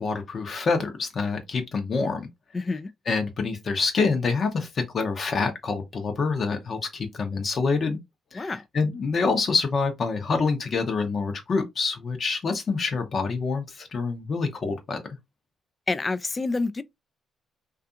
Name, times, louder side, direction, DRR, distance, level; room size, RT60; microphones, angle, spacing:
voice 1, 0.0-2.3 3.1-8.0 8.3-15.0, left 4 dB, 50° left, 0.7 m, -26 dB
voice 2, 2.5-2.9 8.3-8.6 15.9-16.8, left 3 dB, 30° left, 0.3 m, -28 dB
2.6 x 2.4 x 2.5 m
cardioid pair, 75°, 0 cm